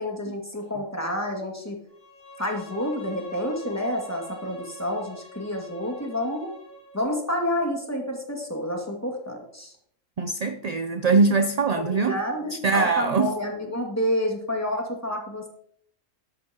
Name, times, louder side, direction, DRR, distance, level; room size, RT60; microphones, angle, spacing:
voice 1, 0.0-1.8 2.4-6.5 6.9-9.7 11.8-15.5, left 1 dB, 10° left, 0 dB, 2.2 m, -29 dB
Bowed string instrument, 1.9-7.0, equal, 30° right, 6.2 m, -45 dB
voice 2, 10.2-12.2 12.5-13.3, right 4 dB, 50° right, 8 dB, 0.5 m, -22 dB
14.0 x 11.0 x 3.0 m, 0.65 s
omnidirectional pair, 1.3 m